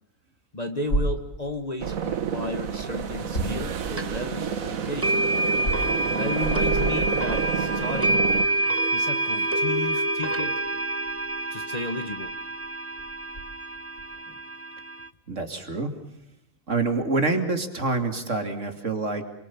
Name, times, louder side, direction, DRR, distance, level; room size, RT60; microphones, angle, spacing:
voice 1, 0.5-5.3 6.1-8.3 8.9-10.6 11.5-12.3, left 2 dB, 30° left, 6 dB, 1.4 m, -33 dB
sound 1, 0.8-1.9 2.5-4.0 4.5-6.1 6.5-6.6 7.2-7.3 8.0-14.2, right 1 dB, 70° left, 5.5 m, -35 dB
sound 2, 1.8-8.4, right 7 dB, 85° right, 1.6 m, -29 dB
sound 3, 4.0-4.1 5.0-15.1, right 2 dB, 15° right, 0.7 m, -27 dB
voice 2, 15.3-16.0 16.7-19.2, right 3 dB, 60° right, 6 dB, 3.1 m, -26 dB
28.0 x 24.0 x 7.2 m, 0.78 s
omnidirectional pair, 1.4 m